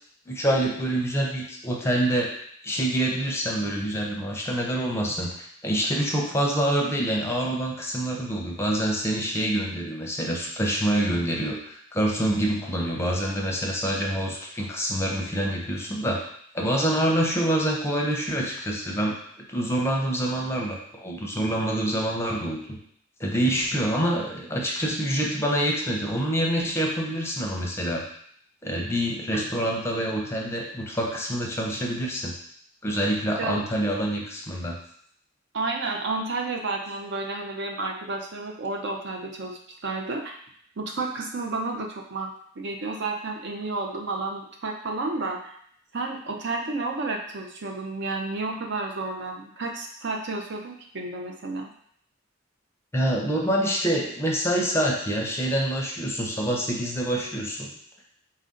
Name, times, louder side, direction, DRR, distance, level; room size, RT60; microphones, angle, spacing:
voice 1, 0.3-2.3 2.6-16.2 16.5-22.8 23.2-28.1 28.6-32.4 32.8-34.8 52.9-57.7, right 1 dB, 15° left, -1 dB, 0.6 m, -26 dB
voice 2, 35.5-40.4 40.8-42.3 42.6-45.5 45.9-51.7, right 3 dB, 60° right, 1 dB, 0.6 m, -31 dB
4.2 x 2.6 x 3.7 m, 0.64 s
head